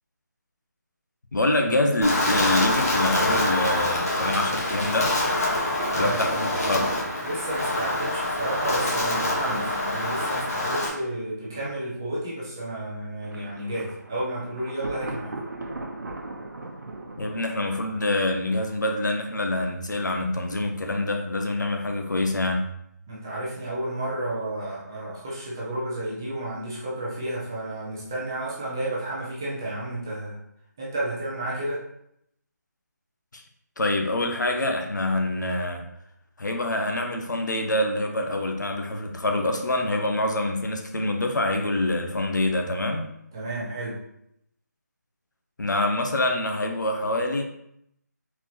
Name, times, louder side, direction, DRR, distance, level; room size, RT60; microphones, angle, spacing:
voice 1, 1.3-5.2 5.9-6.9 17.2-22.7 33.3-33.4 33.8-35.9 36.4-43.1 45.6-47.4, left 1 dB, 80° left, 4 dB, 0.8 m, -26 dB
Wind, 2.0-10.9, left 1 dB, 55° left, 1.3 m, -25 dB
voice 2, 5.9-6.3 7.2-15.3 23.1-30.4 30.8-31.8 43.3-44.0, right 1 dB, 10° right, -7 dB, 0.6 m, -31 dB
Thunder, 13.2-19.0, right 2 dB, 75° right, 0.9 m, -39 dB
4.3 x 4.2 x 2.9 m, 0.75 s
figure-of-eight pair, 175°, 10 cm